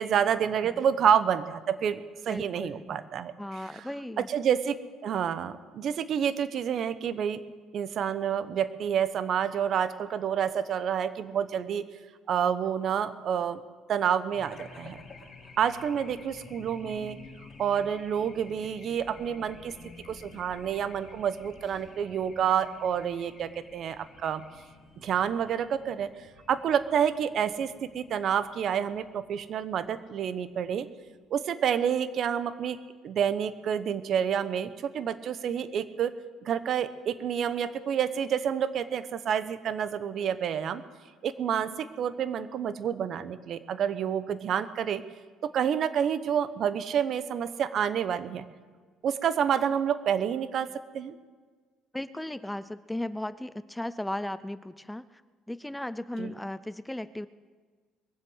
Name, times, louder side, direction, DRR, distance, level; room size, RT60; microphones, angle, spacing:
voice 1, 0.0-3.3 4.2-4.8 5.0-7.4 7.7-11.8 12.3-13.6 13.9-15.0 15.6-17.2 17.6-19.7 20.1-24.4 25.0-26.1 26.5-30.9 31.3-32.8 33.0-36.1 36.4-40.8 41.2-45.0 45.4-48.5 49.0-50.7 50.9-51.1 56.2-56.3, right 8 dB, 50° right, 13 dB, 0.9 m, -28 dB
voice 2, 2.2-3.0 3.4-4.3 51.9-55.2 55.5-57.3, left 1 dB, 5° left, 15 dB, 0.4 m, -36 dB
Race car auto racing / Alarm, 14.3-31.3, left 3 dB, 35° left, 3.7 m, -51 dB
21.5 x 7.8 x 8.0 m, 1.5 s
cardioid pair, 120°, 0 cm